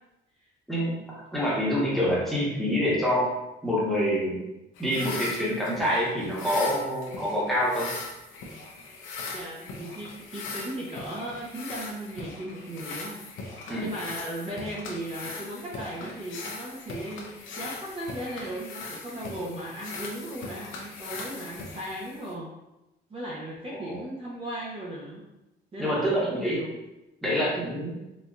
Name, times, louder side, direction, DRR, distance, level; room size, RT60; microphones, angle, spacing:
voice 1, 1.3-3.3 3.6-4.4 4.8-8.0 13.7-13.9 23.7-24.0 25.8-26.6 27.2-28.0, equal, ahead, -6 dB, 1.2 m, -26 dB
sound 1, 4.8-22.3, left 3 dB, 85° left, 0.7 m, -40 dB
voice 2, 9.3-13.2 13.5-17.3 17.6-22.5 23.1-25.2 25.7-26.7, right 1 dB, 30° right, -6 dB, 0.9 m, -36 dB
4.1 x 2.6 x 2.4 m, 0.96 s
cardioid pair, 90°, 20 cm